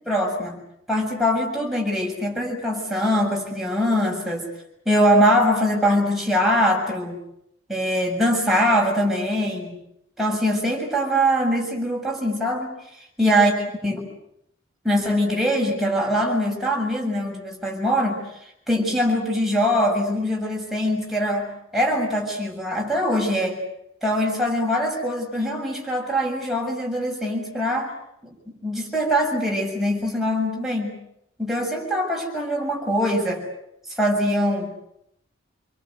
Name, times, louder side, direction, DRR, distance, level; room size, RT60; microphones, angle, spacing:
voice 1, 0.1-0.6 0.9-4.5 4.9-7.2 7.7-9.8 10.2-12.8 13.2-13.5 13.8-14.1 14.8-18.2 18.7-23.6 24.0-27.9 28.2-28.4 28.6-31.0 31.4-33.4 34.0-34.7, equal, ahead, -2 dB, 7.3 m, -22 dB
28.0 x 24.0 x 8.2 m, 0.77 s
head